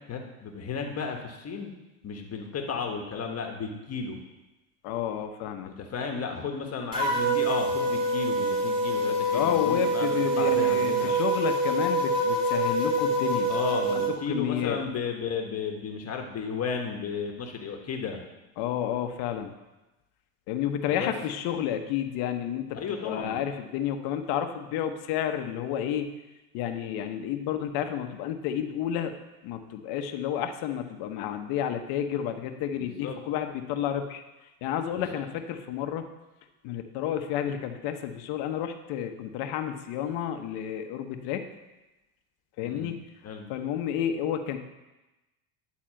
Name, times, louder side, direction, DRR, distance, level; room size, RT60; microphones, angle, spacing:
voice 1, 0.1-1.7 2.0-4.2 5.6-11.1 13.5-18.2 20.9-21.1 22.7-23.4 32.8-33.2 34.9-35.2 42.6-43.0 43.2-43.5, left 5 dB, 35° left, 3 dB, 1.4 m, -33 dB
voice 2, 4.8-5.7 9.3-13.5 14.3-14.8 18.6-19.5 20.5-22.8 23.0-26.1 26.5-29.1 29.4-34.2 34.6-36.0 36.6-41.5 42.6-42.9 43.5-44.6, left 10 dB, 60° left, 7 dB, 1.1 m, -31 dB
sound 1, 6.9-14.1, right 2 dB, 10° right, 2.3 m, -26 dB
10.5 x 4.1 x 7.6 m, 1.1 s
supercardioid pair, 105°, 43 cm